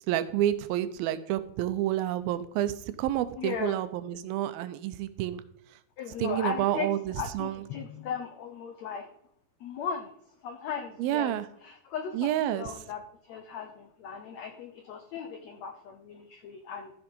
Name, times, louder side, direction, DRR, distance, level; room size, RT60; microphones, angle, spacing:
voice 1, 0.1-5.4 6.2-7.6 11.0-11.5 12.1-12.7, right 12 dB, 80° right, 12 dB, 2.5 m, -29 dB
voice 2, 3.4-3.8 6.0-6.9 7.2-9.1 9.6-10.1 10.4-11.4 11.6-16.9, left 7 dB, 85° left, 6 dB, 1.5 m, -37 dB
14.0 x 6.0 x 5.3 m, 0.68 s
omnidirectional pair, 4.3 m